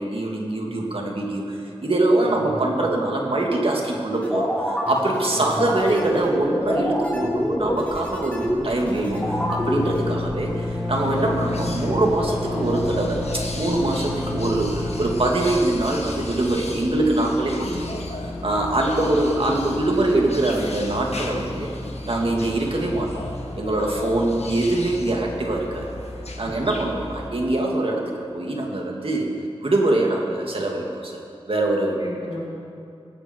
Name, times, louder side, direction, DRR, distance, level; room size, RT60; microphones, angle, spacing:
voice 1, 0.0-1.5 1.8-21.7 22.1-23.2 23.6-25.9 26.4-29.3 29.6-31.2 31.5-32.0, right 2 dB, 60° right, 0 dB, 2.4 m, -23 dB
sound 1, 4.2-10.0, equal, 15° left, 3.8 m, -26 dB
sound 2, 6.6-6.8 7.0-17.7, left 2 dB, 5° right, 2.1 m, -31 dB
sound 3, 10.9-27.3, left 2 dB, 85° left, 1.5 m, -34 dB
voice 2, 32.0-32.4, left 1 dB, 65° left, -5 dB, 4.1 m, -36 dB
18.0 x 16.0 x 4.6 m, 2.6 s
wide cardioid pair, 65°, 11 cm